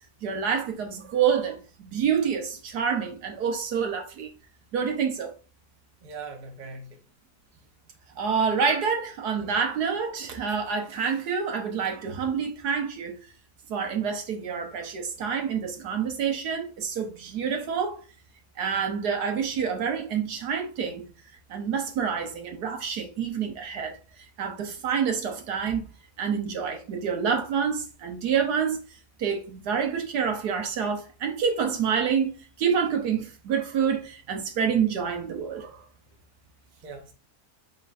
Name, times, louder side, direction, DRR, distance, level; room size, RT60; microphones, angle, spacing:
voice 1, 0.2-4.3 4.7-5.3 8.2-13.2 13.7-18.0 18.6-21.1 21.5-24.0 24.4-25.8 26.2-28.8 29.2-35.8, right 6 dB, 75° right, 1.4 m, -27 dB
voice 2, 6.0-7.0 9.3-9.5 36.8-37.1, right 4 dB, 35° right, 0.8 m, -41 dB
4.4 x 4.1 x 2.4 m
omnidirectional pair, 1.8 m